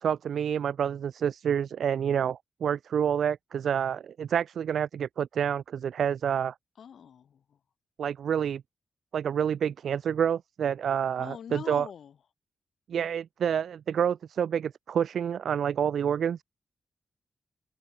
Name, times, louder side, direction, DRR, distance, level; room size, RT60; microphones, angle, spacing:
voice 1, 0.0-6.5 8.0-8.6 9.1-11.9 12.9-16.4, right 8 dB, 75° right, 0.7 m, -28 dB
voice 2, 6.8-7.4 11.2-12.1, left 8 dB, 70° left, 5.6 m, -42 dB
open air
wide cardioid pair, 140°, 0 cm